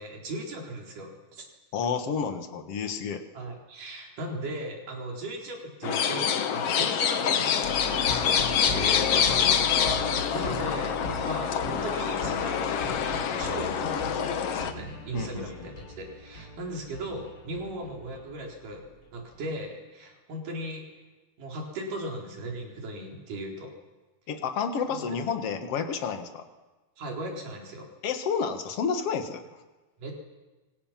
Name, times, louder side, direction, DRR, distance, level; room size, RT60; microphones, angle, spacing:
voice 1, 0.0-1.4 3.3-8.3 10.1-13.1 13.4-18.8 19.1-20.8 21.4-23.7 24.9-25.0 27.0-27.9 30.0-30.1, right 1 dB, 55° right, 0 dB, 5.6 m, -37 dB
voice 2, 1.7-3.2 8.7-9.7 15.1-15.7 24.3-26.4 28.0-29.4, left 6 dB, 50° left, 6 dB, 2.0 m, -30 dB
sound 1, 5.8-14.7, left 8 dB, 70° left, 1.4 m, -26 dB
sound 2, 7.6-19.4, left 1 dB, 25° left, 4.7 m, -39 dB
28.5 x 25.5 x 5.9 m, 1.2 s
omnidirectional pair, 4.6 m